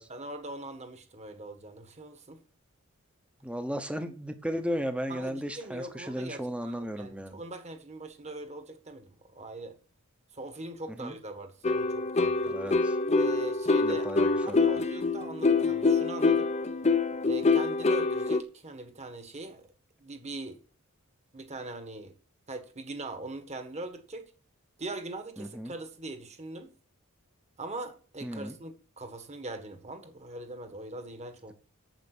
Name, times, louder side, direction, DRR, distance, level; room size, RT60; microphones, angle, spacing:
voice 1, 0.1-2.4 5.1-9.8 10.3-12.6 13.1-14.1 14.4-16.5 17.2-19.7 20.0-20.6 21.3-22.1 22.5-24.3 24.8-26.7 27.6-31.5, right 2 dB, 30° right, 1.6 m, -41 dB
voice 2, 3.4-7.4 10.9-11.2 12.5-12.9 13.8-14.8 25.4-25.7 28.2-28.6, equal, 5° right, 0.9 m, -35 dB
sound 1, 11.6-18.4, left 3 dB, 30° left, 0.6 m, -25 dB
9.0 x 7.6 x 6.1 m
head